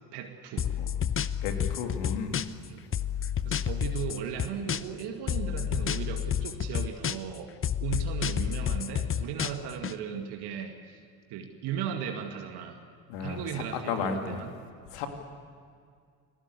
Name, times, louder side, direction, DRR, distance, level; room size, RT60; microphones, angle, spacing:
voice 1, 0.1-0.7 2.7-2.8 3.5-7.5 7.8-11.0 11.3-12.8 13.2-14.5, right 8 dB, 55° right, 4 dB, 2.3 m, -36 dB
sound 1, 0.6-2.7 2.9-5.0 5.3-7.4 7.6-9.9, left 9 dB, 30° left, 0.9 m, -30 dB
voice 2, 1.4-2.4 13.1-14.4 14.9-15.1, left 6 dB, 65° left, 5 dB, 3.0 m, -33 dB
29.0 x 19.0 x 8.3 m, 2.2 s
figure-of-eight pair, 60°, 46 cm